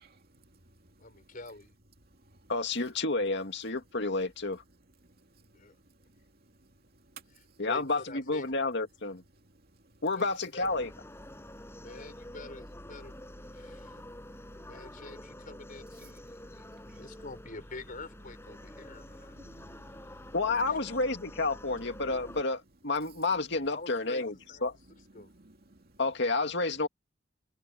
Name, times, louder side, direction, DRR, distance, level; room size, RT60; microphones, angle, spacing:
voice 1, 1.0-1.7 5.5-5.8 7.3-8.5 10.1-10.7 11.8-13.1 13.5-14.0 14.6-19.4 20.6-21.0 23.7-24.6 25.1-25.3, left 2 dB, 45° left, 4.9 m, -47 dB
voice 2, 2.5-4.6 7.6-9.2 10.0-10.9 20.3-24.3 24.6-24.8 26.0-26.9, left 3 dB, 60° left, 2.3 m, -30 dB
sound 1, 10.6-22.4, left 1 dB, 15° left, 7.9 m, -47 dB
voice 3, 19.3-20.3 25.2-26.0, right 1 dB, 50° right, 2.5 m, -58 dB
head